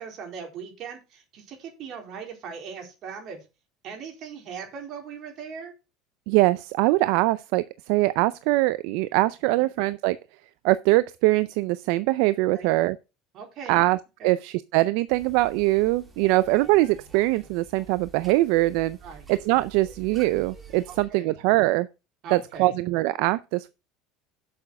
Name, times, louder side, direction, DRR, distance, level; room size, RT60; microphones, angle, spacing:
voice 1, 0.0-3.4 3.8-5.7 9.5-9.7 12.5-12.7 13.3-13.8 14.2-14.3 19.0-19.3 20.9-21.3 22.2-22.7, right 6 dB, 50° right, 3.8 m, -39 dB
voice 2, 6.3-10.2 10.6-13.0 13.7-14.0 14.2-19.0 19.3-21.9 22.3-23.7, right 19 dB, 70° right, 0.4 m, -22 dB
sound 1, 15.1-21.0, right 5 dB, 20° right, 2.7 m, -48 dB
7.7 x 7.0 x 5.8 m
supercardioid pair, 120°, 0 cm